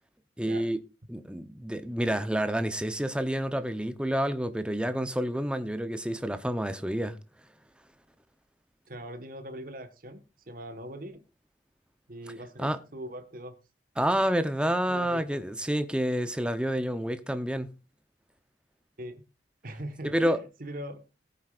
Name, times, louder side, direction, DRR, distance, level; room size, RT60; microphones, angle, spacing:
voice 1, 0.4-0.8 1.1-7.2 12.6-12.8 14.0-17.8 20.0-20.4, equal, 5° right, 0.8 m, -29 dB
voice 2, 8.9-11.2 12.1-13.6 14.9-15.4 19.0-19.2 19.6-21.0, right 1 dB, 45° right, 1.5 m, -41 dB
18.5 x 9.3 x 2.5 m
head